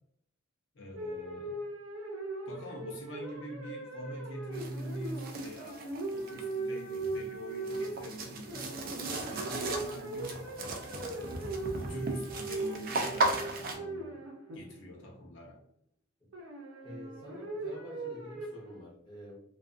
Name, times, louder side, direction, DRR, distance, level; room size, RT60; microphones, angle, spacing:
voice 1, 0.7-1.6 2.5-8.8 9.3-10.5 10.9-11.4 11.7-14.2 14.5-15.6, equal, 60° left, 0 dB, 0.6 m, -44 dB
sound 1, 1.0-14.9 16.3-18.8, right 2 dB, 80° right, 0.6 m, -39 dB
sound 2, 4.5-13.8, right 2 dB, 45° right, 0.4 m, -37 dB
voice 2, 16.8-19.4, left 1 dB, 20° left, -6 dB, 0.6 m, -48 dB
2.4 x 2.3 x 2.4 m, 0.71 s
head